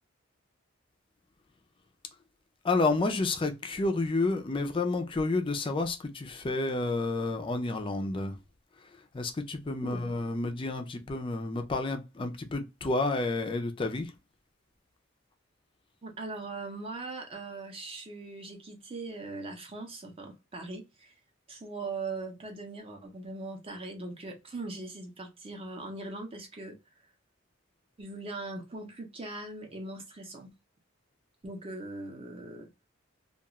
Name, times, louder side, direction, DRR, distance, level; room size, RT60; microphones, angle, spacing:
voice 1, 2.6-8.4 9.1-14.1, left 3 dB, 25° left, 0.4 m, -30 dB
voice 2, 16.0-21.1 21.5-26.8 28.0-30.5 31.4-32.7, right 3 dB, 30° right, 0.6 m, -40 dB
2.3 x 2.3 x 2.9 m
head